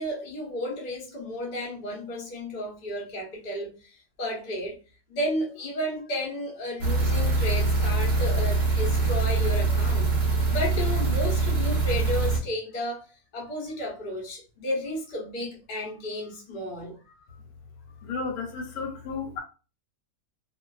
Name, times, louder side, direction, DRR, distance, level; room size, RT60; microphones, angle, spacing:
voice 1, 0.0-4.8 5.1-10.1 10.5-13.1 13.3-17.0 18.8-18.9, left 1 dB, 40° left, 0.7 m, -33 dB
sound 1, 6.8-12.4, right 3 dB, 35° right, 0.9 m, -24 dB
voice 2, 18.0-19.4, left 4 dB, 80° left, 1.1 m, -33 dB
2.4 x 2.3 x 2.2 m
omnidirectional pair, 1.6 m